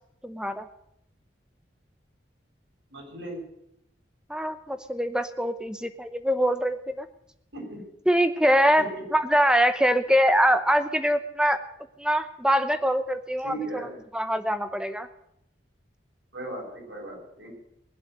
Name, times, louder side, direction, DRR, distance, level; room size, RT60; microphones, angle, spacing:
voice 1, 0.2-0.6 4.3-7.1 8.1-11.6 12.0-13.6 14.1-15.1, equal, 5° right, 10 dB, 0.9 m, -23 dB
voice 2, 2.9-3.4 7.5-7.8 8.8-8.9 13.4-14.0 16.3-17.5, right 1 dB, 75° right, -1 dB, 7.4 m, -37 dB
21.0 x 8.0 x 8.0 m, 0.79 s
head